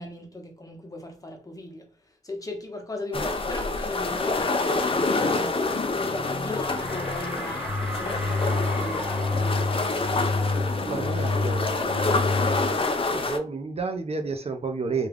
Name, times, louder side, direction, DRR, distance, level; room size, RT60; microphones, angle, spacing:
voice 1, 0.0-5.7 5.9-9.7, left 2 dB, 25° left, 0.9 m, -37 dB
sound 1, 3.1-13.4, left 3 dB, 40° left, 0.5 m, -27 dB
sound 2, 6.1-12.8, left 3 dB, 80° left, 0.8 m, -29 dB
sound 3, 6.7-11.3, equal, 5° right, 1.3 m, -38 dB
voice 2, 10.8-12.2 13.1-15.1, right 4 dB, 45° right, 0.6 m, -31 dB
3.5 x 2.3 x 3.4 m
wide cardioid pair, 85°, 14 cm